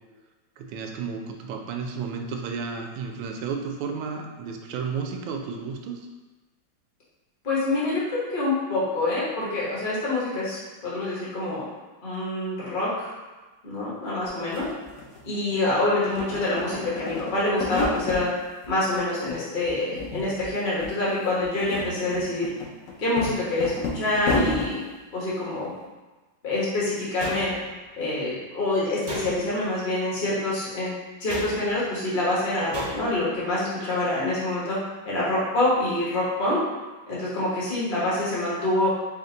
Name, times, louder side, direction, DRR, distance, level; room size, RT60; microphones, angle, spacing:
voice 1, 0.6-6.0, right 5 dB, 85° right, 3 dB, 1.3 m, -32 dB
voice 2, 7.4-11.7 12.0-13.1 13.6-14.7 15.2-18.3 18.7-22.5 23.0-24.8 25.1-25.7 26.4-27.5 28.0-30.9 31.2-34.8 35.0-36.6 37.1-38.9, left 2 dB, 35° left, -8 dB, 1.0 m, -26 dB
sound 1, 14.2-14.3 14.5-15.7 16.0-18.2 18.6-19.4 19.6-20.5 20.8-20.9 21.4-24.7, left 3 dB, 65° left, 0.9 m, -31 dB
sound 2, 27.2-27.9 29.0-29.7 31.3-31.9 32.7-33.3, right 1 dB, 55° right, 0.5 m, -36 dB
4.4 x 2.3 x 3.8 m, 1.2 s
omnidirectional pair, 2.1 m